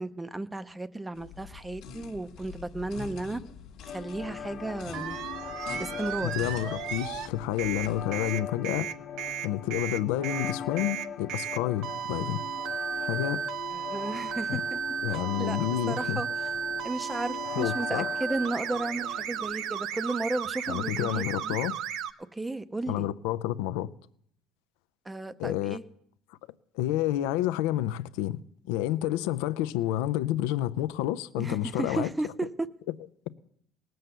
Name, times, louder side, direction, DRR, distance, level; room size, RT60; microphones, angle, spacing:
voice 1, 0.0-3.4 3.9-5.2 5.7-6.4 13.7-14.8 15.1-16.3 16.8-21.6 22.3-23.1 25.1-25.8 31.4-32.5, right 2 dB, 10° right, 0.6 m, -34 dB
sound 1, 1.1-8.3, left 7 dB, 65° left, 1.4 m, -45 dB
sound 2, 3.9-19.9, left 8 dB, 45° left, 0.9 m, -41 dB
sound 3, 4.9-7.3 7.6-22.1, right 8 dB, 60° right, 0.7 m, -34 dB
voice 2, 6.2-8.9 9.4-12.4 13.0-13.4 14.5-14.6 15.0-16.2 17.6-18.1 20.7-21.8 22.9-23.9 25.4-25.8 26.8-28.4 28.7-32.1, left 13 dB, 85° left, 0.5 m, -29 dB
18.5 x 7.7 x 6.7 m
cardioid pair, 135°, 0 cm